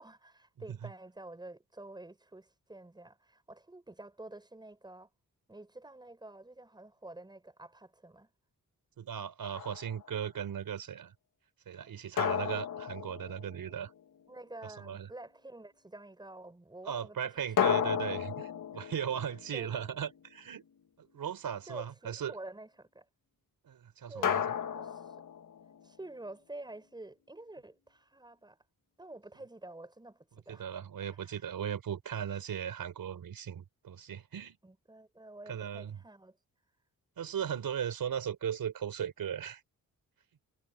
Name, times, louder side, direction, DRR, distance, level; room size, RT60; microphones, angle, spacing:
voice 1, 0.0-5.1 5.5-8.3 11.7-11.9 13.4-13.5 14.3-18.0 18.7-18.8 19.5-19.9 21.7-23.1 24.1-24.4 24.7-25.0 25.8-28.6 29.0-30.7 31.1-31.4 34.6-36.4, right 2 dB, 10° right, 6.4 m, -49 dB
voice 2, 9.0-11.1 11.7-13.9 14.6-15.1 16.8-20.6 21.0-22.3 23.6-24.4 30.5-34.6 35.5-36.0 37.2-39.6, right 8 dB, 85° right, 4.3 m, -37 dB
sound 1, 9.5-10.1 12.2-14.0 17.6-20.2 24.2-25.9, left 8 dB, 65° left, 1.6 m, -33 dB
wide cardioid pair, 165°, 34 cm